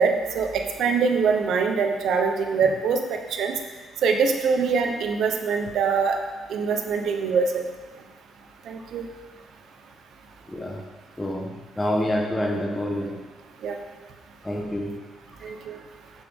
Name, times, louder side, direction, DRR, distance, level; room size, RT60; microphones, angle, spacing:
voice 1, 0.0-3.5 4.0-6.2 6.5-7.6 8.7-9.0 13.6-13.8 15.4-15.8, right 5 dB, 75° right, 4 dB, 1.0 m, -23 dB
voice 2, 10.5-10.9 11.2-13.2 14.4-14.9 15.4-15.5, left 1 dB, 15° left, -1 dB, 1.2 m, -27 dB
10.0 x 6.7 x 3.8 m, 1.3 s
cardioid pair, 90°, 0 cm